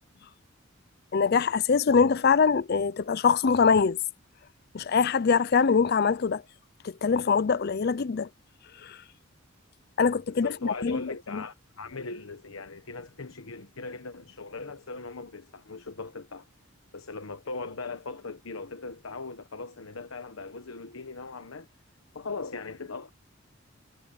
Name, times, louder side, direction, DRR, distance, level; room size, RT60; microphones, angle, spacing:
voice 1, 1.1-4.0 4.7-6.4 6.8-8.3 8.8-9.0 10.0-11.0 11.3-11.4, left 5 dB, 50° left, 0.5 m, -23 dB
voice 2, 10.3-16.5 16.9-21.7 22.1-23.1, left 3 dB, 90° left, 1.1 m, -39 dB
head